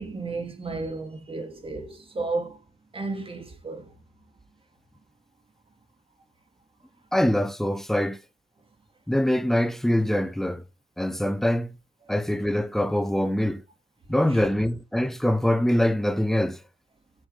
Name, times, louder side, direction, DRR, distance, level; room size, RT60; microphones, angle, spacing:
voice 1, 0.0-2.6 2.9-3.9 14.3-14.4, right 3 dB, 30° right, 2.7 m, -33 dB
voice 2, 7.1-8.2 9.1-10.6 11.0-11.8 12.1-13.6 14.1-16.6, left 1 dB, ahead, 0.8 m, -24 dB
11.0 x 7.1 x 3.4 m
cardioid pair, 100°, 17 cm